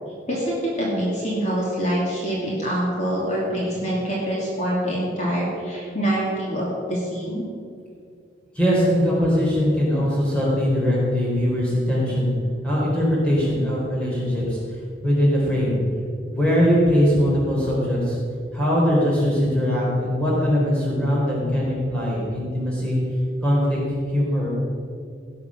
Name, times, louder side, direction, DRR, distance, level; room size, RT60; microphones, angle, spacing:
voice 1, 0.3-7.4, equal, 40° left, -5 dB, 2.9 m, -25 dB
voice 2, 8.5-12.3 12.6-14.6 15.0-15.8 16.3-18.2 18.5-23.0 23.4-23.8 24.1-24.5, equal, 5° left, -6 dB, 3.9 m, -21 dB
17.5 x 7.4 x 6.4 m, 2.3 s
head